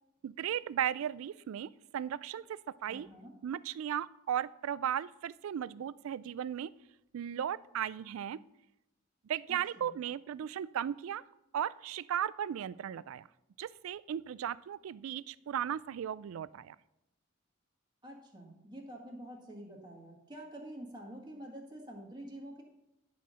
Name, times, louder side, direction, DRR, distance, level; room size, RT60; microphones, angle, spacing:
voice 1, 0.2-3.1 3.4-6.7 7.1-8.4 9.2-11.2 11.5-13.3 13.6-16.8, right 9 dB, 80° right, 18 dB, 0.3 m, -36 dB
voice 2, 2.9-3.3 9.5-10.0 18.0-22.6, right 1 dB, 20° right, -1 dB, 1.6 m, -47 dB
10.5 x 4.2 x 6.2 m, 0.89 s
head